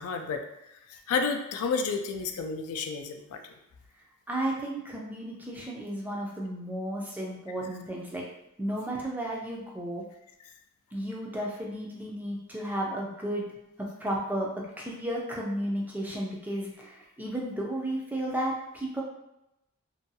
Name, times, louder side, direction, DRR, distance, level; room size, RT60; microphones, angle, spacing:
voice 1, 0.0-3.5, left 5 dB, 85° left, 5 dB, 0.3 m, -31 dB
voice 2, 4.3-8.2 8.6-10.0 10.9-13.5 13.8-19.0, right 1 dB, 10° right, -3 dB, 0.3 m, -33 dB
2.6 x 2.2 x 2.6 m, 0.88 s
head